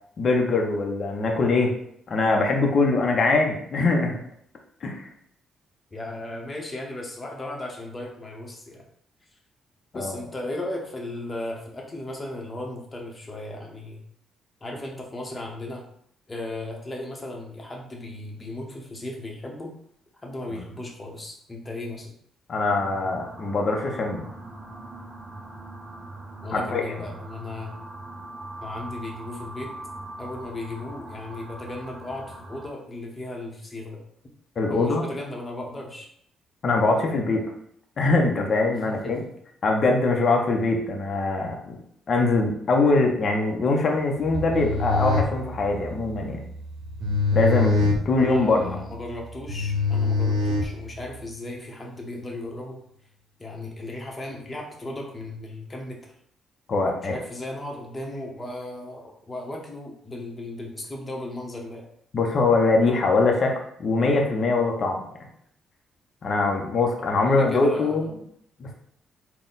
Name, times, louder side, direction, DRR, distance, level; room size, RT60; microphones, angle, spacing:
voice 1, 0.2-1.7 2.1-4.2 4.8-5.1 9.9-10.1 20.5-20.6 22.5-24.3 26.5-26.8 34.6-35.0 36.6-37.4 38.0-39.2 39.6-41.8 42.1-46.4 47.3-48.8 56.7-57.2 62.1-65.0 66.2-68.1 68.6-68.7, left 3 dB, 50° left, 1 dB, 0.7 m, -22 dB
voice 2, 5.9-8.9 9.9-14.0 14.6-15.9 16.3-19.8 20.2-22.1 26.4-27.8 28.6-29.7 30.2-34.0 34.7-36.1 38.9-39.3 48.2-52.8 53.4-56.1 57.0-61.9 67.0-68.1, left 1 dB, 25° left, 0 dB, 1.0 m, -36 dB
sound 1, 22.6-32.7, right 2 dB, 25° right, 0.7 m, -41 dB
sound 2, 44.3-51.2, left 3 dB, 75° right, 0.7 m, -25 dB
4.0 x 2.2 x 3.9 m, 0.69 s
cardioid pair, 90°, 0 cm